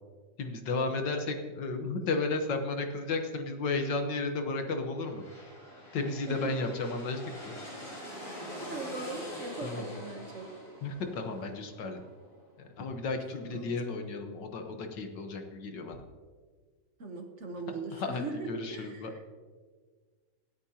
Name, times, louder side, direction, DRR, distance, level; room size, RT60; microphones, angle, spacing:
voice 1, 0.4-5.2 5.9-7.5 9.6-9.9 10.8-12.0 12.6-16.0 17.9-19.1, left 3 dB, 75° left, 5 dB, 1.8 m, -33 dB
sound 1, 4.9-12.5, equal, 45° left, 3.9 m, -44 dB
voice 2, 8.1-8.4 8.7-10.5 13.4-13.7 17.0-19.2, right 3 dB, 45° right, 4 dB, 1.2 m, -40 dB
26.0 x 8.8 x 2.9 m, 1.5 s
omnidirectional pair, 1.9 m